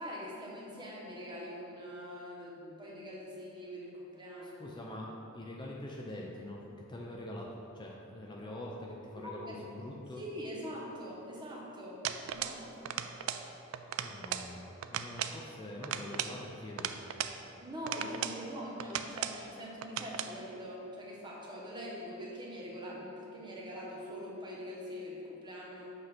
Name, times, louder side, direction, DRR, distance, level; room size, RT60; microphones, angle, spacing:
voice 1, 0.0-4.7 9.2-9.6 10.2-12.0 12.3-12.9 17.6-25.9, equal, 20° right, -5 dB, 1.2 m, -43 dB
voice 2, 4.4-10.2 14.0-16.9, left 1 dB, 20° left, -2 dB, 0.5 m, -44 dB
sound 1, 12.0-12.6 12.9-13.5 13.7-14.5 14.8-15.4 15.8-17.4 17.9-18.4 18.8-19.4 19.8-20.3, right 9 dB, 85° right, 0.3 m, -37 dB
7.7 x 2.8 x 5.9 m, 2.9 s
head